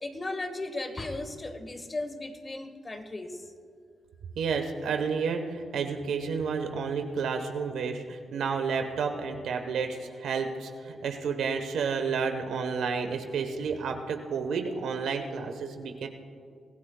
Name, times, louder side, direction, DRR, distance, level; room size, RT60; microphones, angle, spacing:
voice 1, 0.0-3.5, left 2 dB, 30° left, 7 dB, 1.4 m, -36 dB
voice 2, 4.4-16.1, right 5 dB, 80° right, 6 dB, 1.2 m, -31 dB
24.5 x 15.0 x 2.4 m, 2.3 s
cardioid pair, 70°, 0 cm